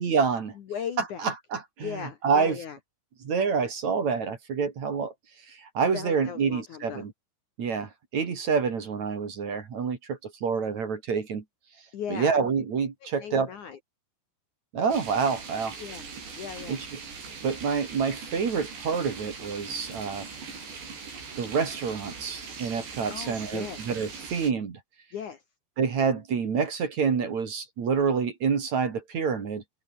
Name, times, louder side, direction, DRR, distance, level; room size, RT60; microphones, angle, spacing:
voice 1, 0.0-0.5 1.2-2.6 3.2-5.1 5.5-7.1 7.6-11.4 12.1-13.5 14.7-15.8 16.7-16.9 17.4-20.3 21.4-24.8 25.8-29.6, right 5 dB, 45° right, 3.6 m, -27 dB
voice 2, 0.6-1.3 1.8-2.8 5.9-7.1 11.9-12.4 13.2-13.8 15.8-16.0 16.4-16.8 23.1-23.8 25.1-25.4, left 8 dB, 55° left, 2.5 m, -37 dB
sound 1, 14.9-24.5, right 5 dB, 85° right, 9.1 m, -41 dB
open air
omnidirectional pair, 4.9 m